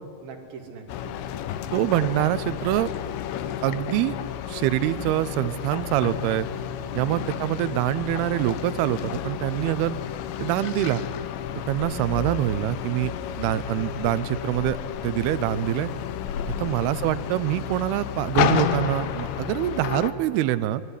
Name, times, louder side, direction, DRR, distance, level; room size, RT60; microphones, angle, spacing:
voice 1, 0.2-1.3 3.6-3.8 6.9-7.3 13.1-13.4 16.5-16.8, right 5 dB, 55° right, 2 dB, 4.2 m, -44 dB
sound 1, 0.9-20.1, left 10 dB, 75° left, 3.1 m, -31 dB
voice 2, 1.7-2.9 3.6-4.2 4.5-6.5 6.9-10.0 10.4-11.0 11.7-13.1 13.4-15.9 16.5-20.8, right 14 dB, 80° right, 13 dB, 2.3 m, -25 dB
26.5 x 21.5 x 10.0 m, 2.2 s
omnidirectional pair, 5.4 m